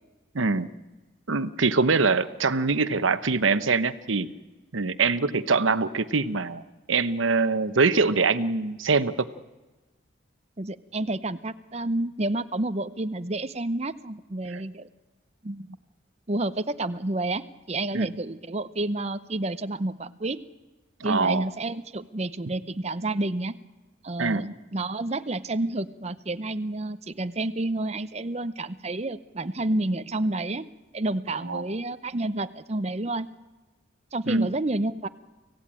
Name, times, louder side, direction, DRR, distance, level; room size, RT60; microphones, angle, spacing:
voice 1, 0.3-0.7 1.3-4.3 4.7-6.6 6.9-9.3 14.5-14.6 17.9-18.1 21.0-21.5 24.2-24.4 31.5-31.6 34.3-34.5, right 4 dB, 85° right, 13 dB, 1.0 m, -23 dB
voice 2, 10.6-14.9 15.4-15.7 16.3-17.4 17.7-20.4 21.0-23.5 24.0-30.7 30.9-33.3 34.1-35.1, right 2 dB, 35° right, 12 dB, 0.7 m, -29 dB
25.0 x 16.5 x 8.9 m, 1.2 s
head